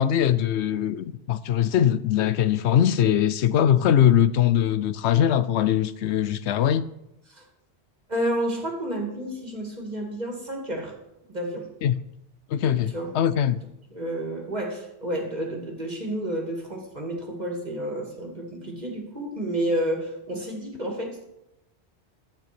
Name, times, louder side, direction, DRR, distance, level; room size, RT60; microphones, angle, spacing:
voice 1, 0.0-6.8 11.8-12.0 12.5-13.6, left 10 dB, 85° left, 0.9 m, -21 dB
voice 2, 8.1-10.9 11.3-11.7 12.9-13.1 13.9-21.2, right 1 dB, 40° right, 2.5 m, -30 dB
12.5 x 8.8 x 6.0 m
omnidirectional pair, 1.1 m